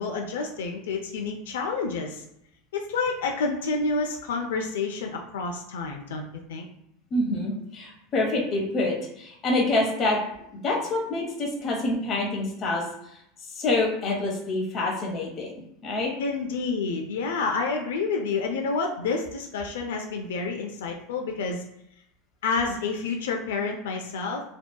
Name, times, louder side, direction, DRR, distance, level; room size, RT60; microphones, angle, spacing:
voice 1, 0.0-2.2 2.7-6.2 6.5-6.7 16.2-21.6 22.4-24.4, left 4 dB, 90° left, 2 dB, 0.3 m, -29 dB
voice 2, 7.1-10.2 10.6-12.9 13.1-16.1, left 2 dB, 35° left, -2 dB, 0.8 m, -27 dB
2.6 x 2.2 x 2.2 m, 0.77 s
supercardioid pair, 125°, 0 cm